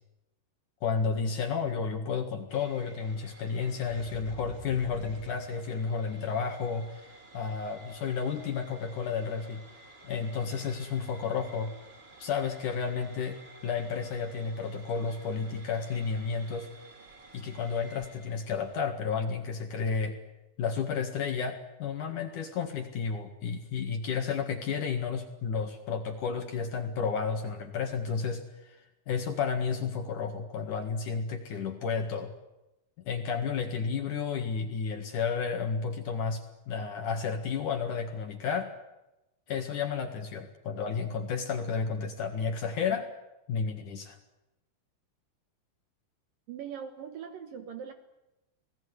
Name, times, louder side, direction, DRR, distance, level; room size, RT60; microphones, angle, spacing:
voice 1, 0.8-9.6 10.0-11.7 12.2-13.4 13.6-16.7 17.3-20.2 20.6-28.8 29.1-32.3 33.0-36.4 36.7-38.7 39.5-43.0 43.5-44.2, left 5 dB, 55° left, 5 dB, 2.6 m, -32 dB
sound 1, 2.5-18.8, right 2 dB, 25° right, 1.4 m, -52 dB
voice 2, 46.5-47.9, right 8 dB, 65° right, 8 dB, 2.4 m, -41 dB
27.5 x 18.5 x 9.7 m, 0.96 s
omnidirectional pair, 5.3 m